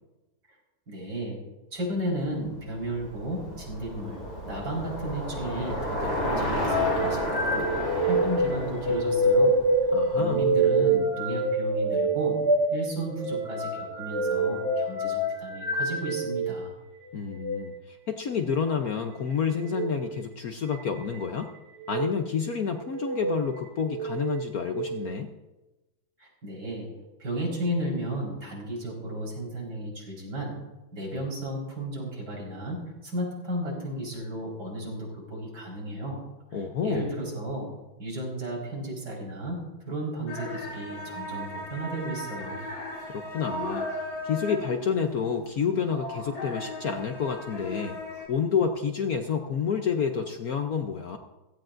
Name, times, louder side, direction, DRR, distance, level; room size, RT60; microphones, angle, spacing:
voice 1, 0.9-1.4 1.7-4.2 4.5-9.5 9.8-12.4 12.7-16.7 26.2-26.9 27.2-30.5 30.9-36.2 36.5-37.7 38.0-42.6, right 1 dB, 55° right, -2 dB, 5.3 m, -34 dB
Bicycle, 2.3-10.6, equal, 35° left, 4.4 m, -32 dB
sound 1, 6.6-16.5 17.3-17.6 19.6-19.9 20.7-21.2 21.8-22.1 22.9-23.4 23.8-24.9, right 2 dB, 15° right, 3.2 m, -26 dB
voice 2, 9.9-10.5 17.1-21.5 21.9-25.3 36.5-37.1 43.1-43.9 44.2-48.0 48.3-51.2, left 6 dB, 60° left, 5 dB, 1.1 m, -29 dB
sound 2, 40.3-48.3, left 1 dB, 75° left, 3.7 m, -36 dB
16.5 x 16.5 x 2.6 m, 1.1 s
omnidirectional pair, 2.1 m